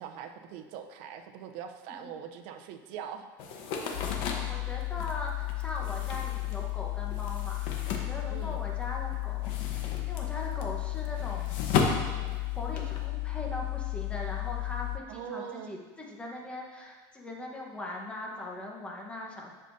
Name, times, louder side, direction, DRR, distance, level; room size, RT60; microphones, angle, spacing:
voice 1, 0.0-3.3 3.7-4.1 8.3-8.6 15.1-15.8, right 8 dB, 60° right, 6 dB, 0.7 m, -42 dB
sound 1, 3.4-8.8 9.1-13.0, left 5 dB, 60° left, 1.1 m, -34 dB
sound 2, 3.9-15.0, left 26 dB, 80° left, 0.4 m, -34 dB
voice 2, 4.0-11.6 11.9-12.1 12.5-19.5, left 1 dB, 10° left, -1 dB, 1.1 m, -41 dB
9.7 x 6.7 x 2.7 m, 1.3 s
supercardioid pair, 145°, 10 cm